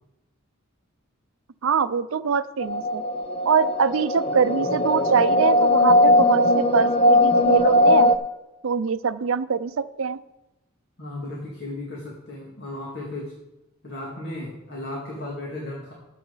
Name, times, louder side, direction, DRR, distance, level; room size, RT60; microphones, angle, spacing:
voice 1, 1.6-3.0 3.5-8.1 8.6-10.2, right 6 dB, 75° right, 14 dB, 0.5 m, -23 dB
sound 1, 2.6-8.2, left 1 dB, 30° left, 0.6 m, -19 dB
voice 2, 11.0-13.3 13.8-15.9, left 1 dB, 55° left, -3 dB, 2.3 m, -35 dB
13.5 x 8.2 x 4.0 m, 0.98 s
head